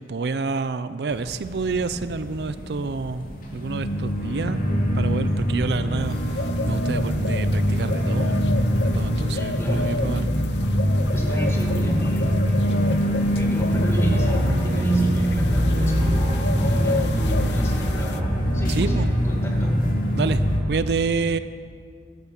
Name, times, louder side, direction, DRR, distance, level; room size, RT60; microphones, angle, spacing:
voice 1, 0.0-3.2 3.5-4.6 4.9-8.4 8.8-10.2 18.7-19.1 20.2-20.4 20.7-21.4, right 4 dB, 70° right, 13 dB, 0.5 m, -28 dB
sound 1, 1.1-20.6, equal, 50° left, 2.4 m, -23 dB
sound 2, 6.1-18.2, left 4 dB, 80° left, 0.6 m, -33 dB
voice 2, 9.3-10.1 11.1-12.8 13.3-19.8, equal, 15° left, -2 dB, 2.0 m, -36 dB
13.0 x 10.5 x 7.2 m, 2.2 s
head